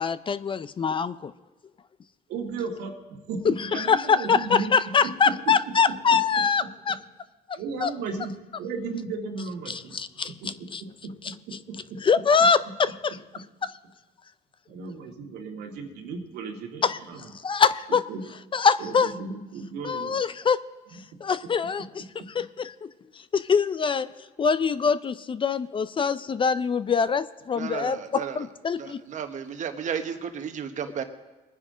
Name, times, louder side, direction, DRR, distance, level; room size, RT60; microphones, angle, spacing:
voice 1, 0.0-1.3 3.4-7.0 7.5-7.9 9.7-10.8 11.2-11.3 12.0-13.7 16.8-17.0 17.4-18.0 18.5-19.1 19.8-20.6 21.2-22.9 23.3-24.1 24.4-29.0, left 6 dB, 30° left, 14 dB, 0.5 m, -24 dB
voice 2, 2.3-2.9 3.3-4.7 5.0-5.1 7.5-8.3 8.6-10.0 10.4-10.5 11.0-11.1 11.7-12.0 14.7-17.2 18.1-18.2 18.8-20.2, right 4 dB, 80° right, 1 dB, 1.9 m, -35 dB
voice 3, 27.5-28.5 28.7-31.0, right 7 dB, 45° right, 7 dB, 1.2 m, -33 dB
22.0 x 10.0 x 3.8 m, 1.1 s
cardioid pair, 110°, 17 cm